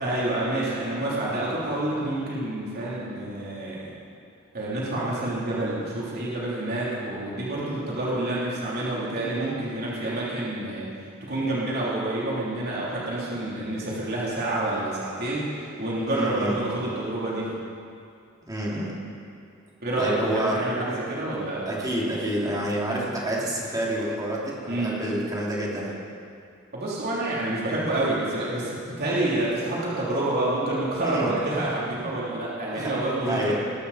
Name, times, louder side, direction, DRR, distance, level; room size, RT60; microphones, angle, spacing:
voice 1, 0.0-3.9 4.5-10.9 11.2-17.5 19.8-21.7 24.7-25.0 26.7-33.5, right 1 dB, 50° right, -7 dB, 3.4 m, -28 dB
voice 2, 16.1-16.5 18.5-18.9 20.0-20.6 21.7-25.9 31.0-31.4 32.7-32.9 33.2-33.5, right 1 dB, 20° right, -5 dB, 3.0 m, -28 dB
20.5 x 12.5 x 4.3 m, 2.3 s
head